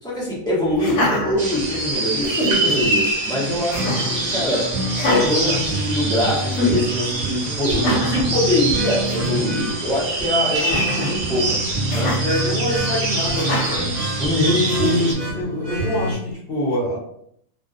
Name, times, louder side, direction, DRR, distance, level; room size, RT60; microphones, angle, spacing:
voice 1, 0.0-11.6 11.9-12.2 14.2-14.6, left 1 dB, 5° left, -7 dB, 0.6 m, -23 dB
Laughter, 0.8-1.9 2.2-2.9 3.7-4.2 4.9-6.1 6.5-6.8 7.7-8.3 8.8-8.9 9.1-9.4 10.6-11.2 11.9-12.2 13.3-13.8 14.7-15.3, left 1 dB, 75° left, 1.1 m, -25 dB
sound 1, 1.4-15.1, right 2 dB, 50° right, 0.5 m, -26 dB
sound 2, 3.3-16.1, right 1 dB, 30° right, 0.8 m, -28 dB
voice 2, 12.2-13.9 14.3-17.0, left 1 dB, 50° left, -8 dB, 0.9 m, -24 dB
2.5 x 2.0 x 2.4 m, 0.70 s
omnidirectional pair, 1.5 m